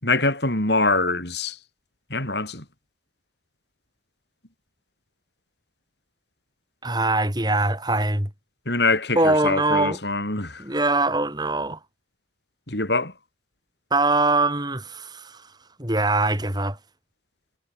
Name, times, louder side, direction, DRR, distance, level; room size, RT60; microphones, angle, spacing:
voice 1, 0.0-1.6 2.1-2.6 8.7-10.6 12.7-13.1, left 3 dB, 60° left, 7.0 m, -24 dB
voice 2, 6.8-8.3 9.1-10.0 10.6-11.8 13.9-15.4 15.8-16.8, right 2 dB, 20° right, 6.0 m, -22 dB
head